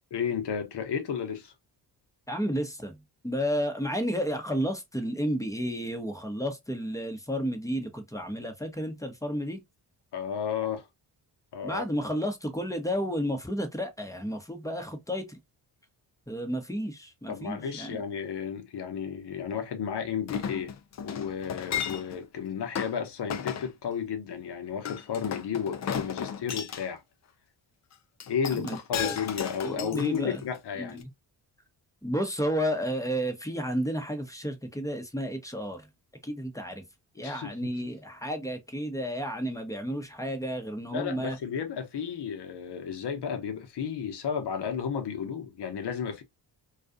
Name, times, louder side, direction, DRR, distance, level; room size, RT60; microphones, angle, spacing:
voice 1, 0.1-1.5 10.1-10.9 11.5-11.8 17.3-20.7 21.0-27.0 28.3-31.0 37.2-37.8 40.9-46.2, left 7 dB, 55° left, 0.9 m, -33 dB
voice 2, 2.3-9.6 11.6-15.4 16.3-18.0 28.5-29.2 29.6-30.4 30.8-31.0 32.0-35.9 36.2-36.8 37.1-41.4, equal, 5° left, 0.7 m, -32 dB
Chink clink, 20.3-22.2 22.7-22.9 23.3-23.7 24.8-26.9 28.2-30.6 31.0-31.1, left 8 dB, 35° left, 0.4 m, -34 dB
2.4 x 2.3 x 2.5 m
supercardioid pair, 55°, 49 cm